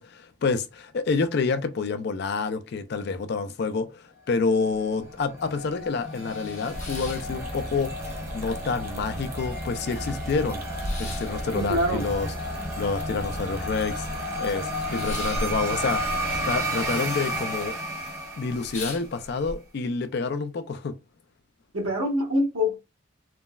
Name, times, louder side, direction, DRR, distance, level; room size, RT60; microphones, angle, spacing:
voice 1, 0.0-10.6 11.0-14.1 14.4-17.8 18.4-20.9, left 4 dB, 50° left, 0.4 m, -28 dB
sound 1, 4.5-19.1, equal, 10° right, 0.8 m, -33 dB
sound 2, 6.0-8.0 8.3-9.0 9.4-9.5 9.7-13.8 14.1-16.9 17.1-17.7 18.1-18.2 18.5-19.6, left 2 dB, 35° left, 0.9 m, -40 dB
sound 3, 6.7-16.6, right 1 dB, 45° right, 0.5 m, -37 dB
voice 2, 11.5-12.1 21.7-22.8, left 1 dB, 90° right, 1.0 m, -25 dB
3.4 x 2.0 x 2.2 m
head